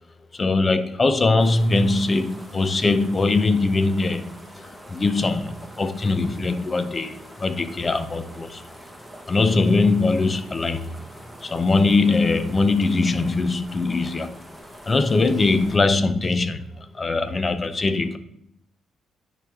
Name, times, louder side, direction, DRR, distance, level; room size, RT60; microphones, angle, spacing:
voice 1, 0.4-4.3 4.9-8.6 9.3-10.9 11.4-14.4 14.9-16.6 17.0-18.2, left 3 dB, 30° left, 0.7 m, -21 dB
sound 1, 1.4-15.8, equal, ahead, 1.3 m, -44 dB
9.9 x 4.9 x 3.5 m
cardioid pair, 90°, 0 cm